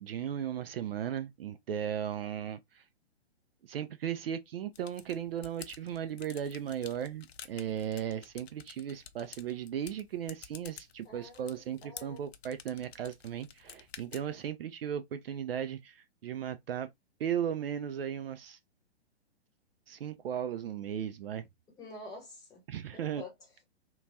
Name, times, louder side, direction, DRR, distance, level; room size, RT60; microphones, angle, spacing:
voice 1, 0.0-2.8 3.6-16.9 17.2-18.6 19.9-21.5 22.7-23.2, right 9 dB, 55° right, 0.4 m, -36 dB
sound 1, 4.7-14.5, left 8 dB, 65° left, 0.5 m, -51 dB
voice 2, 11.8-12.2 21.8-22.6 23.1-23.6, left 2 dB, 10° left, 0.8 m, -47 dB
2.9 x 2.3 x 2.6 m
figure-of-eight pair, 120°, 34 cm